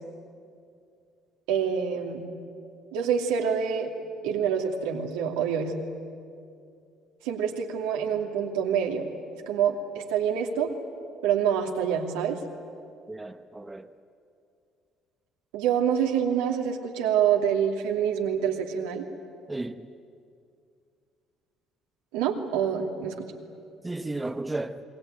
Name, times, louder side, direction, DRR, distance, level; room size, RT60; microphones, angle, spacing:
voice 1, 1.5-2.2 2.9-3.9 4.2-5.7 7.2-9.1 9.5-10.7 11.2-12.4 15.5-19.1 22.1-23.3, right 8 dB, 85° right, 2.6 m, -26 dB
voice 2, 13.1-13.9 19.5-19.8 23.8-24.8, right 2 dB, 15° right, 1.1 m, -33 dB
27.5 x 21.5 x 9.2 m
supercardioid pair, 70°, 0 cm